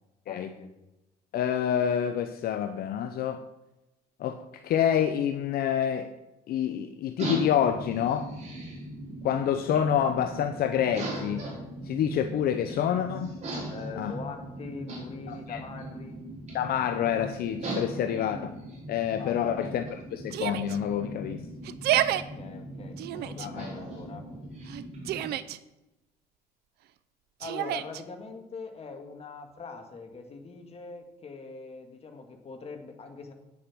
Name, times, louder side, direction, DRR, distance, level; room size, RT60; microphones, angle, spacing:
voice 1, 0.3-0.7 13.7-16.2 17.9-18.2 19.1-19.6 22.1-24.3 27.4-33.3, left 4 dB, 35° left, 4 dB, 1.9 m, -42 dB
voice 2, 1.3-3.4 4.2-4.4 4.6-6.1 6.5-8.3 9.2-11.4 11.8-13.3 14.0-14.1 15.3-15.6 16.5-18.4 18.9-19.8 20.1-21.5 23.4-23.7, left 9 dB, 65° left, 8 dB, 0.7 m, -27 dB
sound 1, 7.2-25.3, right 1 dB, 40° right, 4.0 m, -39 dB
Yell, 20.3-20.8 21.6-22.2 23.0-23.5 24.7-25.6 27.4-28.0, right 12 dB, 75° right, 0.6 m, -29 dB
9.4 x 7.2 x 6.1 m, 0.98 s
cardioid pair, 110°, 17 cm